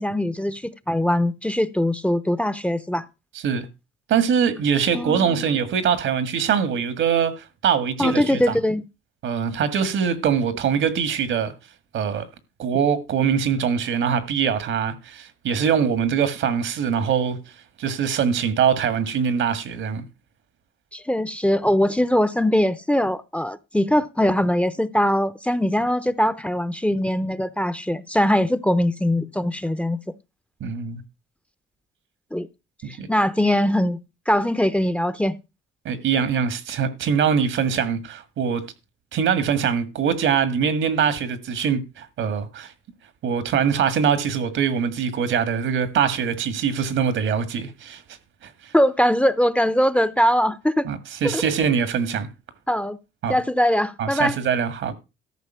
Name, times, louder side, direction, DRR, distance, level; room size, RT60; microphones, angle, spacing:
voice 1, 0.0-3.0 4.9-5.6 8.0-8.8 20.9-30.0 32.3-32.5 32.9-34.0 34.3-35.4 48.7-50.8 51.3-51.4 52.7-53.0 53.3-54.4, left 1 dB, 5° left, 0.7 m, -21 dB
voice 2, 4.1-8.5 9.2-11.5 11.9-12.3 12.6-17.4 17.8-20.0 30.6-31.0 32.8-33.1 35.9-38.6 39.1-42.7 43.2-48.0 48.4-48.7 50.8-52.3 53.2-53.4 54.0-54.9, right 7 dB, 75° right, 1.8 m, -23 dB
13.5 x 5.6 x 5.6 m
cardioid pair, 90°, 20 cm